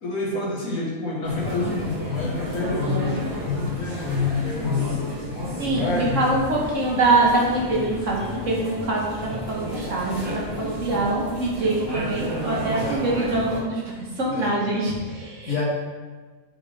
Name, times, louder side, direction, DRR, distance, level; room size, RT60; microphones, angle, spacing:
voice 1, 0.0-3.1 3.4-5.0 5.8-6.5 12.8-13.1 14.3-15.0 15.5-15.6, left 4 dB, 90° left, -3 dB, 1.9 m, -27 dB
sound 1, 1.2-13.6, equal, 20° right, 1.9 m, -31 dB
voice 2, 5.6-15.5, right 2 dB, 65° right, -3 dB, 1.8 m, -24 dB
8.0 x 4.7 x 3.5 m, 1.4 s
omnidirectional pair, 1.4 m